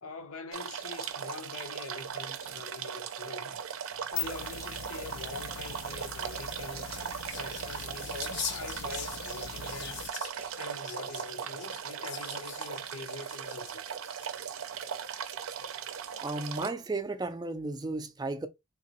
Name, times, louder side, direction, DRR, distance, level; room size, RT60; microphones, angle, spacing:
voice 1, 0.0-3.6 4.1-7.0 7.3-10.1 10.6-13.8, left 3 dB, 85° left, 0.8 m, -44 dB
sound 1, 0.5-16.7, right 7 dB, 80° right, 0.5 m, -38 dB
sound 2, 3.9-10.1, left 8 dB, 70° left, 0.4 m, -42 dB
sound 3, 6.4-14.7 15.3-15.9, left 6 dB, 55° left, 0.8 m, -43 dB
voice 2, 16.2-18.5, right 2 dB, 20° right, 0.4 m, -34 dB
3.4 x 2.9 x 2.9 m
head